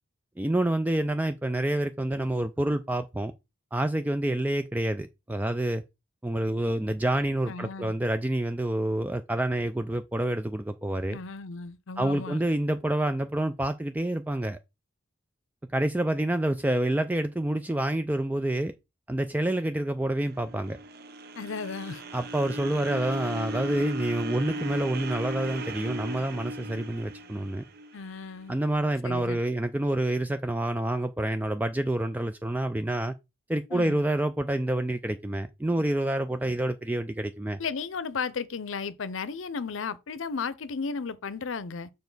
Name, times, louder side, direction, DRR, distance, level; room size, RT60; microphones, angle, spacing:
voice 1, 0.4-3.3 3.7-5.8 6.2-11.2 12.0-14.6 15.7-18.7 19.1-20.8 22.1-27.6 28.5-33.1 33.5-37.6, right 1 dB, 10° right, 0.3 m, -28 dB
voice 2, 7.5-7.9 11.1-12.4 21.4-22.0 27.9-28.6 29.0-29.4 33.7-34.0 37.6-41.9, left 5 dB, 75° left, 0.6 m, -34 dB
sound 1, 20.2-28.4, right 1 dB, 50° right, 0.8 m, -37 dB
7.0 x 5.1 x 3.9 m
head